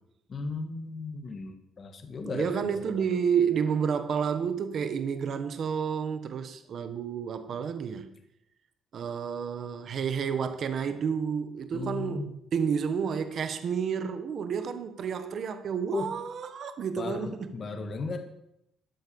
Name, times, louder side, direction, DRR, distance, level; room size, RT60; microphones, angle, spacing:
voice 1, 0.3-2.7 11.7-12.3 15.9-16.1 16.9-18.2, left 4 dB, 30° left, 1.6 m, -35 dB
voice 2, 2.2-8.1 8.9-17.5, right 7 dB, 40° right, 1.2 m, -30 dB
13.0 x 12.0 x 7.0 m
cardioid pair, 180°, 0 cm